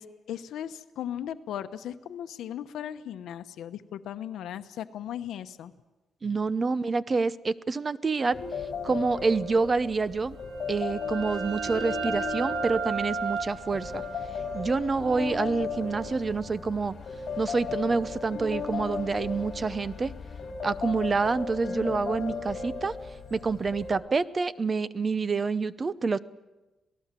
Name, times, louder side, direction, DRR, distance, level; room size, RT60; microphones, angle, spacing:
voice 1, 0.0-5.7, left 10 dB, 85° left, 10 dB, 0.9 m, -37 dB
voice 2, 6.2-8.4 8.8-10.4 10.7-14.0 14.5-16.9 17.4-20.1 20.6-22.9 23.3-26.2, right 4 dB, 30° right, 16 dB, 0.7 m, -27 dB
sound 1, 8.3-24.0, left 5 dB, 50° left, 6.2 m, -36 dB
sound 2, 10.4-15.9, right 5 dB, 85° right, 1.7 m, -35 dB
sound 3, 12.3-20.5, left 3 dB, 25° left, 5.6 m, -52 dB
27.0 x 18.5 x 7.5 m, 1.1 s
cardioid pair, 130°, 0 cm